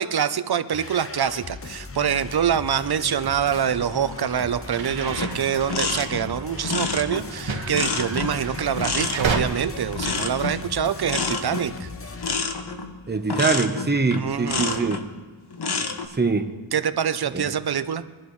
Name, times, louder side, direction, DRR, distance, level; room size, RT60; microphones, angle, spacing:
voice 1, 0.0-11.9 14.2-15.0 16.7-18.0, right 8 dB, 55° right, 12 dB, 0.7 m, -25 dB
sound 1, 0.7-12.4, left 4 dB, 30° left, 0.8 m, -38 dB
sound 2, 3.5-9.4, right 5 dB, 75° right, 1.6 m, -33 dB
sound 3, 5.1-15.1 15.5-16.1, left 4 dB, 55° left, 1.2 m, -29 dB
voice 2, 13.1-15.0 16.2-16.5 17.3-17.5, right 4 dB, 20° right, 6 dB, 1.0 m, -23 dB
22.5 x 11.5 x 3.2 m, 1.4 s
wide cardioid pair, 100°, 46 cm